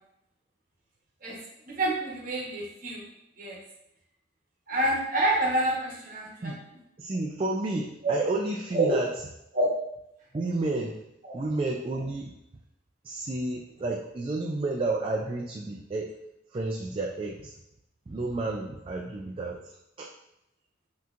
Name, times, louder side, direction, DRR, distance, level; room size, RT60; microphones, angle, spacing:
voice 1, 1.6-3.0 3.4-3.6 4.7-6.5 8.0-8.1 8.7-9.0 9.5-9.7 11.3-11.4, right 1 dB, 45° right, -3 dB, 1.1 m, -27 dB
voice 2, 7.0-9.1 10.3-11.0 11.3-12.4 13.0-16.2 16.5-17.5 18.1-20.1, right 2 dB, 30° right, -1 dB, 0.3 m, -31 dB
5.7 x 2.9 x 2.5 m, 0.83 s
head